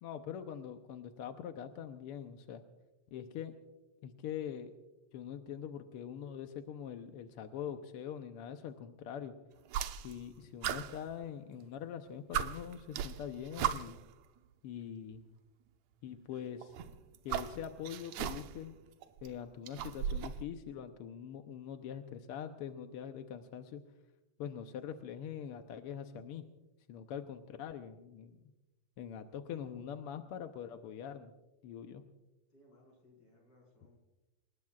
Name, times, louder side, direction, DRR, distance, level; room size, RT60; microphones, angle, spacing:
voice 1, 0.0-2.6 3.1-3.5 4.0-4.7 5.1-9.3 9.9-14.0 14.6-15.3 16.0-16.8 17.2-18.8 19.2-23.8 24.4-26.4 26.9-28.4 29.0-31.3 31.6-32.0, left 8 dB, 70° left, 6 dB, 1.4 m, -43 dB
sound 1, 9.7-10.3 10.6-11.7 12.0-12.1 12.3-14.1 15.1-15.2 16.6-18.7 19.0-20.4, right 9 dB, 80° right, 2.0 m, -37 dB
voice 2, 32.5-34.0, left 1 dB, 35° left, 0 dB, 5.6 m, -64 dB
28.5 x 19.5 x 2.4 m, 1.0 s
omnidirectional pair, 3.3 m